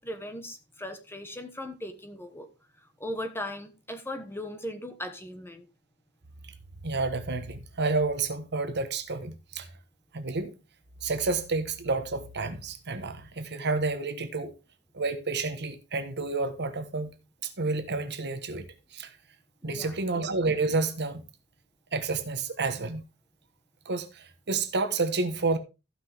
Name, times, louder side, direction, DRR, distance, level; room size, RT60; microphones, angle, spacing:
voice 1, 0.0-2.5 3.0-5.7 19.6-20.0, left 1 dB, 10° left, 1.2 m, -38 dB
voice 2, 6.8-9.7 10.1-10.5 11.0-14.5 14.9-17.1 17.4-18.7 18.9-19.1 19.6-21.2 21.9-23.0 23.8-25.6, right 3 dB, 50° right, 1.3 m, -30 dB
15.0 x 6.0 x 3.5 m
head